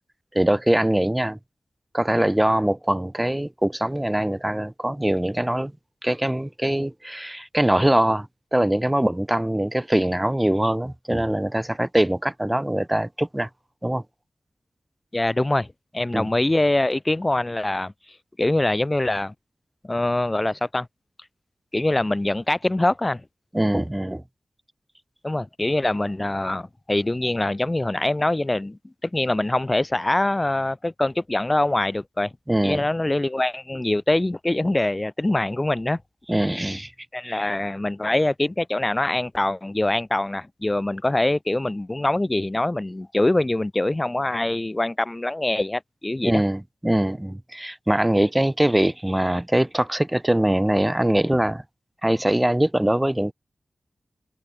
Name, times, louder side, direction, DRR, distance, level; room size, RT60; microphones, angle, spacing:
voice 1, 0.3-1.4 1.9-5.7 6.0-13.5 13.8-14.0 16.1-16.3 23.5-24.2 32.5-32.8 36.3-36.9 37.2-37.5 46.2-51.6 52.0-53.3, right 1 dB, 10° right, 5.1 m, -22 dB
voice 2, 15.1-15.7 15.9-17.9 18.4-19.3 19.8-20.9 21.7-23.2 25.2-32.3 32.6-36.0 37.1-46.4, left 1 dB, 20° left, 1.7 m, -24 dB
wide cardioid pair, 85°, 0 cm